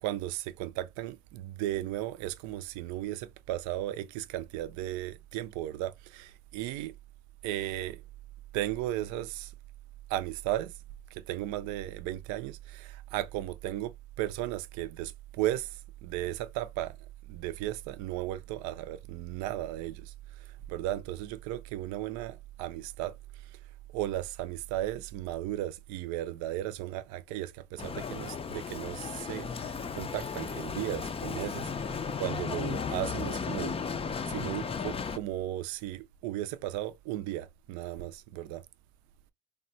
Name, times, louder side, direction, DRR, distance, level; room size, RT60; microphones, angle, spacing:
voice 1, 0.0-6.9 7.4-8.0 8.5-9.5 10.1-10.7 11.1-17.0 17.3-23.1 23.4-23.6 23.9-33.8 34.3-38.6, right 14 dB, 75° right, 0.5 m, -35 dB
Bicycle, 27.8-35.2, left 6 dB, 20° left, 0.4 m, -35 dB
3.5 x 2.1 x 2.6 m
supercardioid pair, 70°, 30 cm